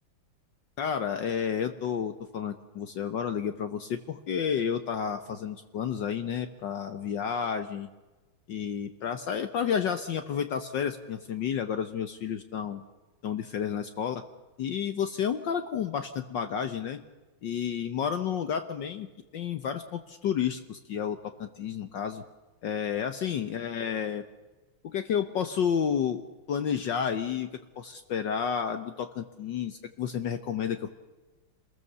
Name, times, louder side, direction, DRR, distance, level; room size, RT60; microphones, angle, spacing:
voice 1, 0.8-7.9 8.5-12.8 13.2-14.2 14.6-17.0 17.4-19.1 19.3-22.2 22.6-24.2 24.8-26.2 26.5-30.9, left 7 dB, 65° left, 8 dB, 1.6 m, -31 dB
27.5 x 21.0 x 6.9 m, 1.2 s
omnidirectional pair, 2.3 m